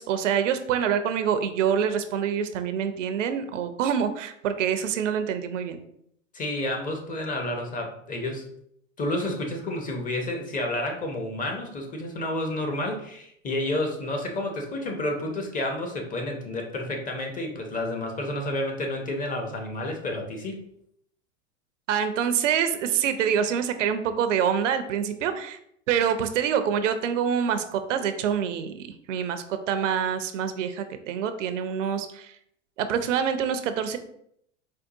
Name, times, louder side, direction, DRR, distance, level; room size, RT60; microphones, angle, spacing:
voice 1, 0.0-5.8 21.9-25.6 25.9-32.4 32.8-34.0, right 8 dB, 75° right, 10 dB, 0.5 m, -26 dB
voice 2, 6.3-8.5 9.0-20.6, left 1 dB, 20° left, 2 dB, 0.7 m, -30 dB
4.5 x 2.2 x 2.6 m, 0.70 s
hypercardioid pair, 95°, 38 cm